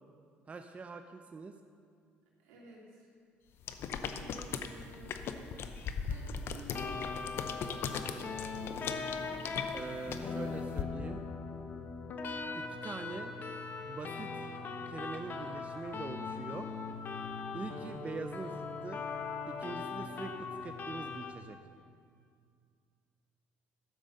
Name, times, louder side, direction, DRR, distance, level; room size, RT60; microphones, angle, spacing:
voice 1, 0.5-1.6 9.7-11.2 12.5-13.3 13.8-14.5 14.9-16.7 17.5-19.0 19.5-21.6, right 4 dB, 30° right, 6 dB, 0.6 m, -43 dB
voice 2, 2.4-3.1 4.0-5.2 6.0-9.5, right 1 dB, 85° right, -5 dB, 3.3 m, -54 dB
sound 1, 3.6-10.8, left 6 dB, 60° left, 0.8 m, -39 dB
sound 2, 6.7-21.3, left 4 dB, 45° left, 1.1 m, -40 dB
sound 3, 12.4-21.3, left 4 dB, 10° left, 2.3 m, -53 dB
12.5 x 7.3 x 6.6 m, 2.2 s
supercardioid pair, 80°, 5 cm